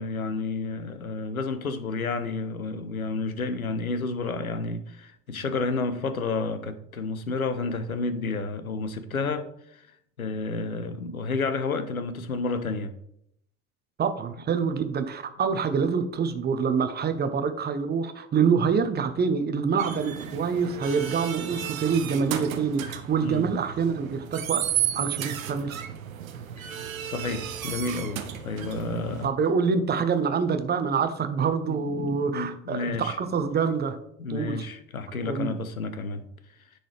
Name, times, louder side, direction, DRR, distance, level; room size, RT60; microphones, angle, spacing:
voice 1, 0.0-9.4 9.7-9.9 10.2-12.9 23.2-23.4 26.6-29.3 31.7-33.2 34.2-36.3, left 3 dB, 85° left, 0.6 m, -31 dB
voice 2, 14.0-24.6 24.9-25.8 29.2-34.0 34.3-34.6 35.2-35.6, right 6 dB, 25° right, 0.7 m, -26 dB
sound 1, 19.8-29.3, right 10 dB, 75° right, 0.7 m, -33 dB
10.0 x 3.9 x 3.3 m
figure-of-eight pair, 65°, 41 cm